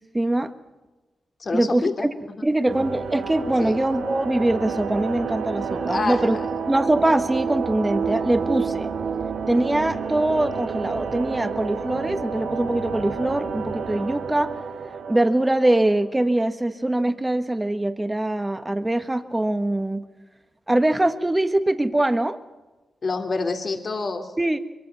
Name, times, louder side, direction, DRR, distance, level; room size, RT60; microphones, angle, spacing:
voice 1, 0.1-0.5 1.5-2.1 2.4-6.4 6.7-8.9 9.5-14.5 15.1-20.0 20.7-22.4 24.4-24.6, right 1 dB, 15° right, 9 dB, 1.6 m, -23 dB
voice 2, 1.4-2.4 3.6-3.8 5.9-6.4 23.0-24.3, left 3 dB, 50° left, 5 dB, 2.7 m, -27 dB
sound 1, 2.7-16.2, right 5 dB, 85° right, 2.1 m, -30 dB
23.5 x 23.0 x 5.9 m, 1.2 s
cardioid pair, 80°, 0 cm